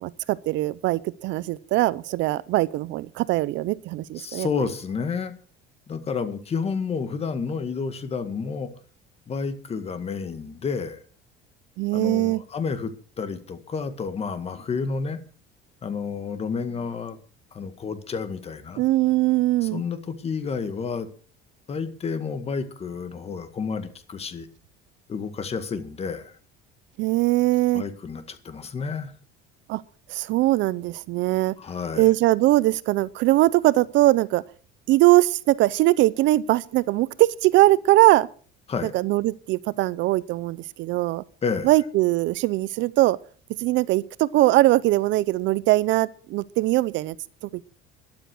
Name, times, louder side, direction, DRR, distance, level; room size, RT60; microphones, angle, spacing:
voice 1, 0.0-4.5 11.8-12.4 18.8-19.8 27.0-27.8 29.7-29.8 30.1-31.5 32.0-34.4 34.9-38.3 38.8-41.2 41.6-43.2 43.6-47.2, right 17 dB, 65° right, 0.6 m, -21 dB
voice 2, 4.2-5.3 5.9-8.7 9.3-11.0 11.9-15.2 15.8-17.2 17.5-18.8 19.6-21.1 21.7-24.5 25.1-26.3 27.7-29.1 31.6-32.1 38.7-38.9 41.4-41.7, left 5 dB, 30° left, 1.8 m, -30 dB
13.0 x 11.5 x 6.2 m
cardioid pair, 135°, 21 cm